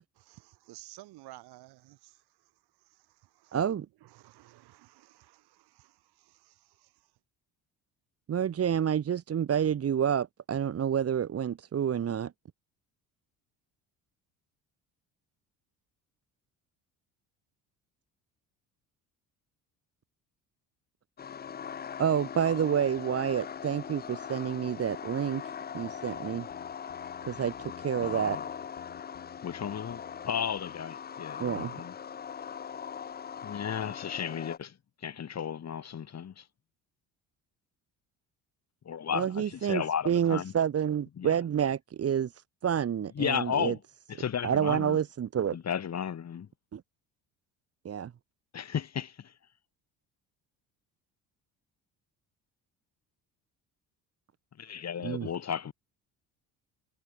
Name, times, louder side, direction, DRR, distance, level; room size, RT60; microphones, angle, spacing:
voice 1, 0.2-3.7 4.0-7.1, right 17 dB, 75° right, 4.6 m, -55 dB
voice 2, 3.5-3.9 8.3-12.3 22.0-25.4 25.7-26.5 27.3-28.4 31.4-31.7 39.1-43.8 44.4-45.6 46.7-46.8 47.8-48.1 55.0-55.3, right 8 dB, 35° right, 1.1 m, -29 dB
sound 1, 21.2-34.6, left 7 dB, 25° left, 0.5 m, -40 dB
sound 2, 25.7-30.3 30.6-30.8, left 10 dB, 55° left, 5.6 m, -54 dB
voice 3, 28.0-28.4 29.4-31.9 33.4-34.8 35.0-36.4 38.9-40.5 41.2-41.3 43.2-43.8 44.1-45.0 45.5-46.5 48.5-49.3 54.6-55.7, left 8 dB, 40° left, 1.8 m, -34 dB
supercardioid pair, 70°, 40 cm